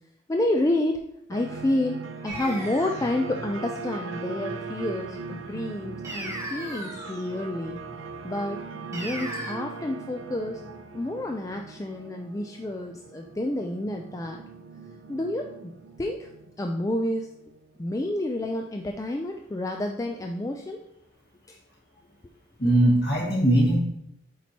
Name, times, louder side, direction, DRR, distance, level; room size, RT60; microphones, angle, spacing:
voice 1, 0.3-1.0 1.3-7.8 8.2-8.6 8.9-10.6 10.9-14.4 15.1-15.7 16.0-16.3 16.6-17.3 17.8-20.8 21.5-21.6, left 1 dB, 15° left, 3 dB, 0.3 m, -29 dB
sound 1, 1.3-17.6, right 4 dB, 80° right, 0.6 m, -40 dB
sound 2, 2.3-3.2 6.0-7.3 8.9-9.5, right 1 dB, 15° right, 1.1 m, -36 dB
voice 2, 22.6-23.8, right 1 dB, 55° left, -3 dB, 2.0 m, -20 dB
8.2 x 4.6 x 2.9 m, 0.78 s
head